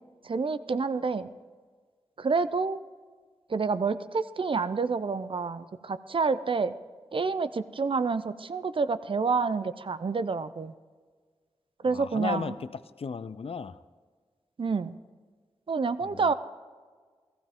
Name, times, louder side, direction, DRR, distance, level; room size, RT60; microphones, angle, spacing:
voice 1, 0.2-1.3 2.2-2.8 3.5-6.8 7.1-10.7 11.8-12.5 14.6-14.9 15.7-16.3, right 4 dB, 50° right, 13 dB, 0.5 m, -28 dB
voice 2, 11.8-13.8 16.1-16.3, left 5 dB, 60° left, 15 dB, 0.4 m, -35 dB
15.0 x 15.0 x 3.6 m, 1.5 s
wide cardioid pair, 80°, 11 cm